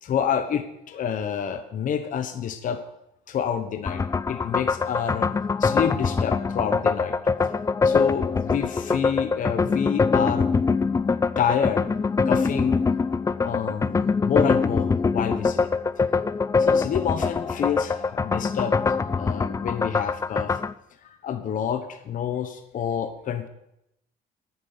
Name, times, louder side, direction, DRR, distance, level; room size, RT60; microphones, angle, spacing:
voice 1, 0.0-2.8 3.3-5.3 5.6-7.2 7.8-10.5 11.4-11.8 12.2-12.8 13.4-15.7 16.6-18.8 19.1-20.6 21.0-23.5, left 8 dB, 50° left, 8 dB, 1.1 m, -28 dB
sound 1, 3.9-20.7, left 4 dB, 20° left, 0.5 m, -23 dB
10.0 x 9.7 x 6.8 m, 0.81 s
cardioid pair, 110°, 17 cm